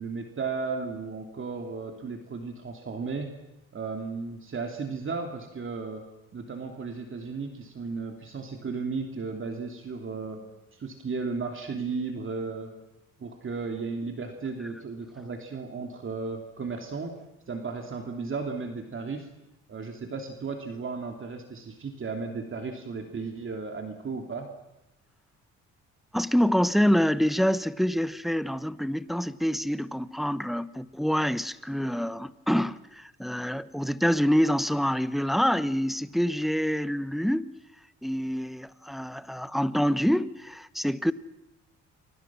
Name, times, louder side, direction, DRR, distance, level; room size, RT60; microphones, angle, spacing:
voice 1, 0.0-3.3 3.7-6.0 6.3-12.7 13.2-17.2 17.5-19.3 19.7-24.5, right 4 dB, 40° right, 3.0 m, -35 dB
voice 2, 26.1-37.5 38.0-41.1, equal, ahead, 0.9 m, -26 dB
29.5 x 24.5 x 6.2 m
cardioid pair, 90°, 30 cm